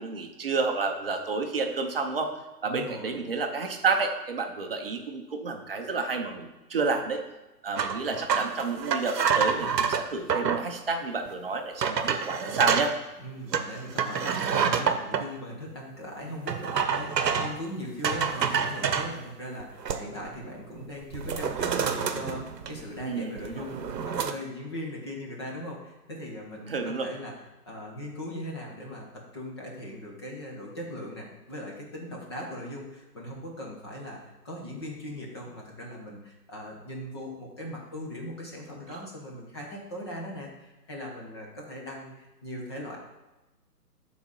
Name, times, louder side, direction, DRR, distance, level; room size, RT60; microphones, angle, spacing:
voice 1, 0.0-2.3 2.6-7.2 7.6-12.9 23.0-23.6 26.7-27.1 38.9-39.0, right 4 dB, 35° right, 4 dB, 0.8 m, -30 dB
voice 2, 2.6-3.3 13.2-27.4 27.7-43.0, left 1 dB, 15° left, -2 dB, 0.8 m, -39 dB
sound 1, 7.8-10.7 11.3-11.4 11.8-12.9 13.5-15.2 16.5-17.6 18.0-19.1 19.6-20.3 20.6-20.8 21.1-23.0 23.4-24.3, right 6 dB, 85° right, 0.9 m, -28 dB
7.7 x 4.0 x 5.5 m, 1.0 s
hypercardioid pair, 165°, 48 cm